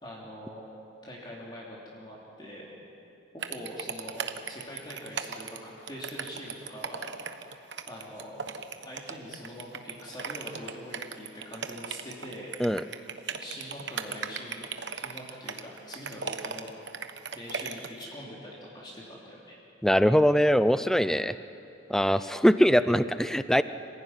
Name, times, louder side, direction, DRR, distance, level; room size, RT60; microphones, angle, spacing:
voice 1, 0.0-0.6 1.0-2.7 3.3-7.1 7.9-8.4 8.8-12.6 13.3-16.7 17.3-19.6, equal, 25° left, -5 dB, 3.2 m, -43 dB
sound 1, 3.4-18.0, right 6 dB, 65° right, 1.1 m, -37 dB
voice 2, 19.8-21.3 21.9-23.6, equal, ahead, 13 dB, 0.4 m, -22 dB
26.5 x 15.5 x 9.7 m, 3.0 s
head